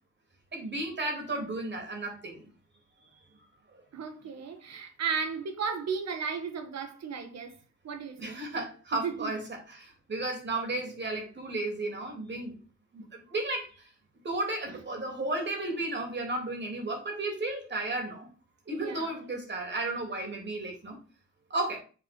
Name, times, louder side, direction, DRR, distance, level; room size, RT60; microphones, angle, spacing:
voice 1, 0.5-2.4 8.2-12.6 12.9-13.7 14.2-18.3 18.7-21.0 21.5-21.8, right 2 dB, 35° right, 3.5 m, -33 dB
voice 2, 3.9-7.6 7.8-8.4 9.0-9.3 14.7-14.8 18.8-19.1, right 6 dB, 60° right, 1.8 m, -35 dB
8.1 x 4.5 x 5.5 m
cardioid pair, 90°, 30 cm